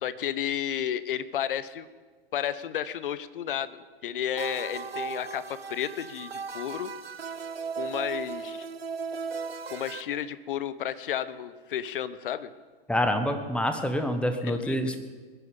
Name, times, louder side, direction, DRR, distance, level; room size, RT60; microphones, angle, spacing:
voice 1, 0.0-1.9 2.3-3.8 4.0-6.9 7.8-8.7 9.7-12.5 14.4-15.0, left 10 dB, 65° left, 16 dB, 0.9 m, -32 dB
sound 1, 4.4-10.0, right 5 dB, 85° right, 0.8 m, -36 dB
voice 2, 12.9-15.0, equal, 5° left, 7 dB, 1.3 m, -27 dB
20.5 x 11.0 x 5.2 m, 1.5 s
figure-of-eight pair, 100°, 29 cm